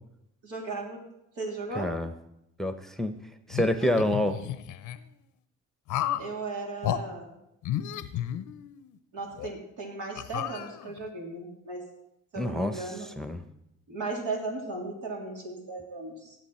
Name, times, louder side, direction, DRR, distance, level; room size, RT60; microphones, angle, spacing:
voice 1, 0.4-1.0 1.3-1.9 6.2-7.3 9.1-11.8 12.3-13.1 13.9-16.4, right 3 dB, 85° right, -1 dB, 3.4 m, -36 dB
voice 2, 1.8-2.1 2.6-3.1 3.5-4.4 12.4-13.4, left 1 dB, ahead, 8 dB, 0.8 m, -28 dB
sound 1, 3.5-5.0 5.9-6.3 6.8-7.0 7.6-8.9 9.4-9.5 10.2-11.1, left 12 dB, 80° left, 0.7 m, -32 dB
17.0 x 7.8 x 4.4 m, 0.81 s
cardioid pair, 90°, 30 cm